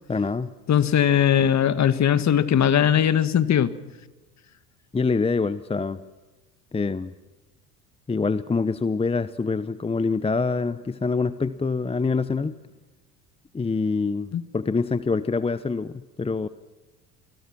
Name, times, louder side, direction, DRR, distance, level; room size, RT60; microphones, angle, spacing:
voice 1, 0.1-0.5 4.9-6.0 6.7-7.1 8.1-12.6 13.5-16.5, left 4 dB, 10° left, 15 dB, 0.8 m, -25 dB
voice 2, 0.7-3.7 14.3-14.4, left 9 dB, 35° left, 13 dB, 1.7 m, -19 dB
28.0 x 21.5 x 6.1 m, 1.2 s
hypercardioid pair, 75°, 47 cm